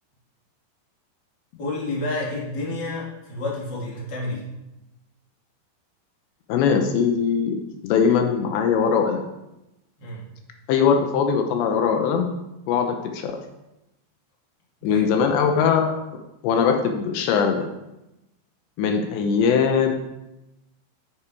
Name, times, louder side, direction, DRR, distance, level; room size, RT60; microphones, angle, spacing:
voice 1, 1.6-4.4 10.0-10.2 14.8-15.1 18.8-19.0, left 2 dB, 30° left, -4 dB, 2.9 m, -30 dB
voice 2, 6.5-7.6 7.8-9.2 10.7-12.4 12.7-13.4 14.8-15.9 16.4-17.7 18.8-19.9, left 6 dB, 80° left, 4 dB, 3.1 m, -21 dB
12.0 x 8.9 x 4.7 m, 0.94 s
omnidirectional pair, 5.1 m